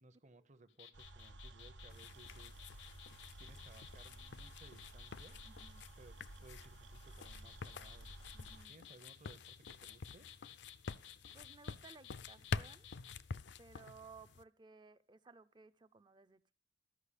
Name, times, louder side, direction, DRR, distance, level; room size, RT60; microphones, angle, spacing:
voice 1, 0.0-2.6 3.4-5.4 6.0-8.2 8.7-10.3, right 2 dB, 40° right, 0.9 m, -61 dB
sound 1, 0.7-5.7 7.0-13.2, left 10 dB, 90° left, 0.9 m, -56 dB
sound 2, 0.9-8.7, right 2 dB, 80° right, 0.8 m, -55 dB
sound 3, 1.9-14.4, left 4 dB, 65° left, 0.5 m, -48 dB
voice 2, 5.4-5.9 8.3-8.8 11.3-12.9 13.6-16.5, right 4 dB, 25° right, 0.5 m, -59 dB
13.0 x 5.6 x 8.3 m
head